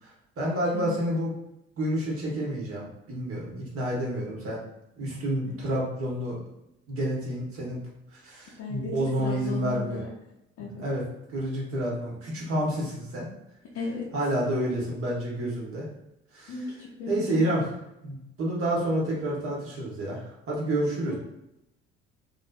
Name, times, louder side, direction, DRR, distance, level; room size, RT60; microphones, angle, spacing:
voice 1, 0.4-1.3 1.8-4.6 5.0-6.4 6.9-7.8 8.1-10.0 10.6-11.0 11.3-13.3 14.1-15.9 16.3-16.5 17.1-17.6 18.0-21.1, right 1 dB, 45° right, -5 dB, 1.1 m, -29 dB
voice 2, 8.5-10.1 10.6-10.8 13.7-14.1 16.5-17.6 21.1-21.2, left 4 dB, 55° left, -5 dB, 0.7 m, -35 dB
2.5 x 2.4 x 2.2 m, 0.86 s
hypercardioid pair, 55°, 32 cm